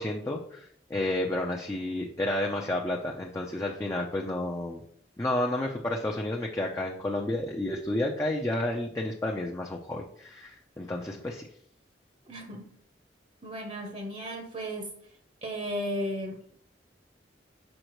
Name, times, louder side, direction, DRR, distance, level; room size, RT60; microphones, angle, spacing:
voice 1, 0.0-4.8 5.2-11.4, left 1 dB, 15° left, -1 dB, 0.5 m, -31 dB
voice 2, 12.3-12.7 13.4-14.9 15.4-16.5, equal, 40° right, 3 dB, 0.9 m, -35 dB
6.4 x 5.4 x 3.0 m, 0.64 s
head